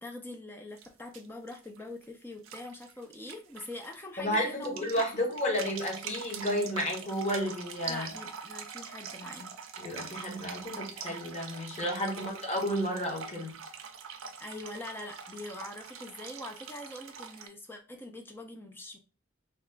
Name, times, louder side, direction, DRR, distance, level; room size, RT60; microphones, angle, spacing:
voice 1, 0.0-4.8 5.1-5.3 7.9-9.5 12.1-12.3 14.4-19.0, left 2 dB, 10° left, 0.4 m, -44 dB
sound 1, 0.8-0.9 1.1-2.0 2.4-4.0 4.3-17.5, right 6 dB, 75° right, 0.4 m, -44 dB
voice 2, 4.2-8.1 9.8-13.6, equal, 35° left, 1.0 m, -32 dB
2.9 x 2.3 x 3.3 m
head